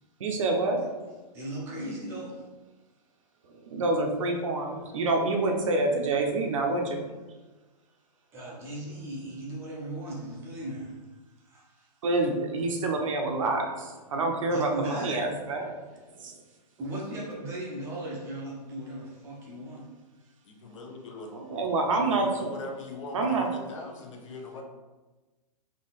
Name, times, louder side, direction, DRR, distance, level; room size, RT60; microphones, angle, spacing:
voice 1, 0.2-0.9 3.7-7.2 12.0-15.7 16.2-16.3 21.3-22.5 23.1-23.5, right 2 dB, 50° right, 2 dB, 0.7 m, -27 dB
voice 2, 1.3-2.4 8.3-10.9 11.5-11.9 14.5-15.4 16.8-19.9, right 1 dB, 10° right, -4 dB, 0.6 m, -37 dB
voice 3, 20.4-21.3 22.1-24.6, left 3 dB, 50° left, 2 dB, 0.8 m, -41 dB
3.9 x 2.8 x 4.1 m, 1.2 s
hypercardioid pair, 165°, 21 cm